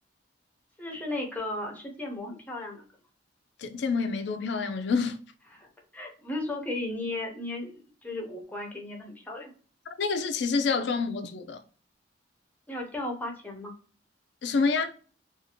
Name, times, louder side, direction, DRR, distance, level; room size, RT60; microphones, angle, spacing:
voice 1, 0.8-2.9 5.5-9.5 12.7-13.7, left 2 dB, 10° left, 0.7 m, -35 dB
voice 2, 3.6-5.2 10.0-11.6 14.4-14.9, left 4 dB, 65° left, 0.4 m, -27 dB
2.6 x 2.4 x 2.8 m
head